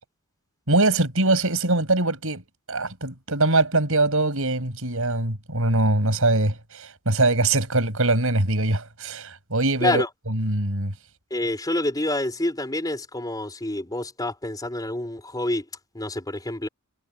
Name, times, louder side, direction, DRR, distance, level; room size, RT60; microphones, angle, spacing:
voice 1, 0.7-2.4 2.7-10.0 10.3-10.9, right 2 dB, 65° right, 7.1 m, -22 dB
voice 2, 11.3-15.6 15.9-16.7, left 1 dB, 15° left, 4.1 m, -27 dB
head